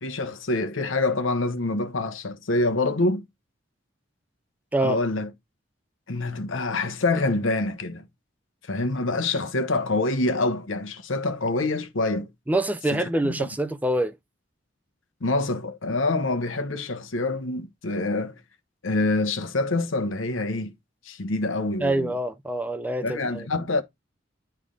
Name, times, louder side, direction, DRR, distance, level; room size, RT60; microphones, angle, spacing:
voice 1, 0.0-3.2 4.8-5.3 6.1-8.1 8.7-12.3 12.9-13.5 15.2-18.4 18.8-20.7 21.0-22.1 23.0-23.8, left 2 dB, 85° left, 1.0 m, -26 dB
voice 2, 12.5-14.1 21.8-23.5, right 1 dB, 10° right, 0.4 m, -25 dB
9.7 x 3.4 x 3.7 m
head